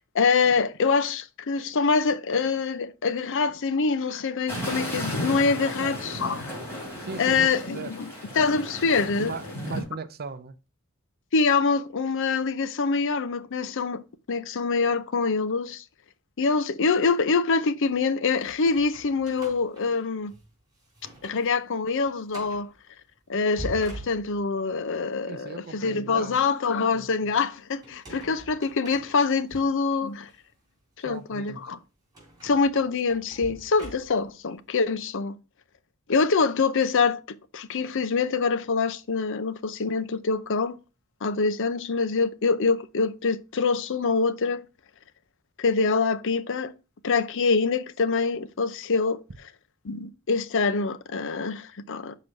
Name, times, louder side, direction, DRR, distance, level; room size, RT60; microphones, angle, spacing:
voice 1, 0.0-6.5 7.2-8.1 8.3-9.3 11.3-15.8 16.4-20.3 21.2-22.7 23.3-30.3 31.0-31.8 32.4-35.4 36.1-40.8 41.2-44.6 45.6-46.7 47.0-49.2 49.8-52.2, left 4 dB, 60° left, 0.6 m, -25 dB
sound 1, 4.5-9.8, equal, 10° left, 3.6 m, -34 dB
voice 2, 5.6-6.0 7.0-8.0 9.2-10.6 25.3-26.4 26.9-27.3 31.1-31.7, right 4 dB, 45° right, 0.6 m, -38 dB
sound 2, 18.4-20.5 20.9-21.5 21.8-21.9 22.3-22.7 23.3-24.7 27.8-29.6 30.2-30.4 32.1-34.4, right 1 dB, 20° right, 4.4 m, -44 dB
6.1 x 5.0 x 5.1 m
head